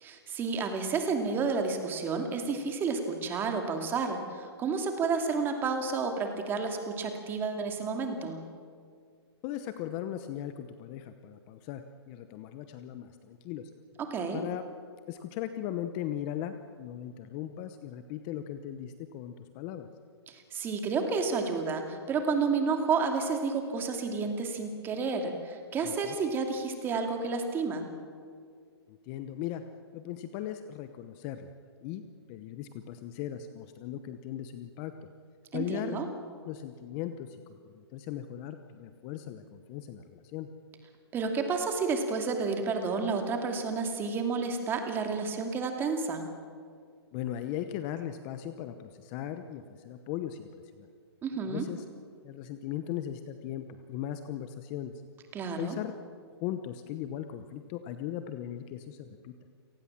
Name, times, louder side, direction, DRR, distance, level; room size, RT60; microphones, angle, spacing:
voice 1, 0.0-8.4 14.0-14.4 20.3-27.9 35.5-36.1 41.1-46.2 51.2-51.6 55.3-55.8, right 4 dB, 15° right, 5 dB, 2.5 m, -31 dB
voice 2, 9.4-13.7 14.3-14.7 15.1-19.9 25.8-26.1 28.9-29.6 29.9-31.5 31.8-32.0 32.3-34.9 35.5-36.0 36.4-40.5 47.1-50.5 50.8-50.9 51.5-51.8 52.2-54.9 55.5-56.0 56.4-59.3, left 11 dB, 25° left, 9 dB, 0.9 m, -38 dB
29.5 x 18.0 x 7.4 m, 2.1 s
hypercardioid pair, 155°, 14 cm